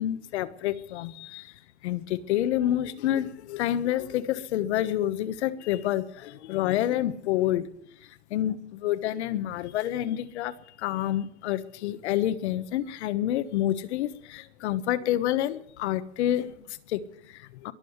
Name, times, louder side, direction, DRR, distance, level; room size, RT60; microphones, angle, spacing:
voice 1, 0.0-1.5 1.8-7.7 8.3-17.7, left 12 dB, 80° left, 1.3 m, -28 dB
22.0 x 7.7 x 8.0 m
supercardioid pair, 175°, 33 cm